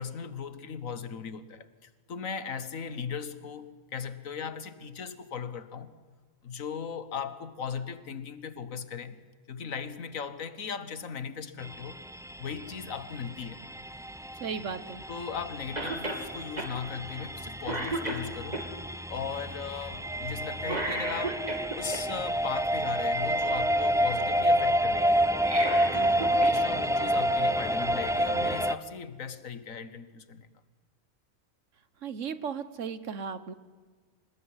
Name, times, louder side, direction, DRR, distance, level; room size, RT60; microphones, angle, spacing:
voice 1, 0.0-5.9 6.4-9.2 9.5-12.0 12.4-13.6 15.1-18.7 19.1-21.5 21.8-25.3 25.9-30.5, left 6 dB, 75° left, 1.7 m, -38 dB
sound 1, 11.6-28.7, equal, 5° right, 0.3 m, -29 dB
voice 2, 14.4-15.0 32.0-33.5, right 6 dB, 65° right, 1.5 m, -35 dB
Cough, 15.8-16.2 16.6-16.7 17.2-17.4 17.7-18.6 20.6-22.0 25.3-26.6 26.9-27.0 28.1-28.2, right 2 dB, 30° right, 3.1 m, -33 dB
26.0 x 20.0 x 9.7 m
omnidirectional pair, 1.4 m